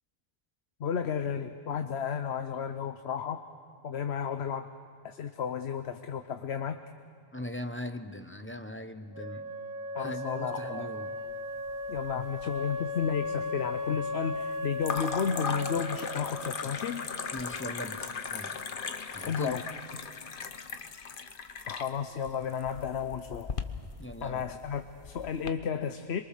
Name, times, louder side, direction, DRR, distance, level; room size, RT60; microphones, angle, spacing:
voice 1, 0.8-3.4 3.8-4.7 5.0-6.8 9.9-10.9 11.9-17.0 19.3-19.6 21.7-23.5 24.2-26.2, left 7 dB, 85° left, 8 dB, 1.1 m, -33 dB
voice 2, 7.3-9.5 10.0-11.1 17.3-18.5 19.1-19.6 24.0-24.4, left 1 dB, 10° left, 7 dB, 0.9 m, -39 dB
Wind instrument woodwind instrument, 9.1-16.8, left 2 dB, 65° right, 1.8 m, -36 dB
sound 1, 11.7-12.4 12.7-13.4 14.8-25.5, left 5 dB, 55° left, 1.1 m, -38 dB
27.0 x 23.5 x 6.6 m, 2.4 s
omnidirectional pair, 1.1 m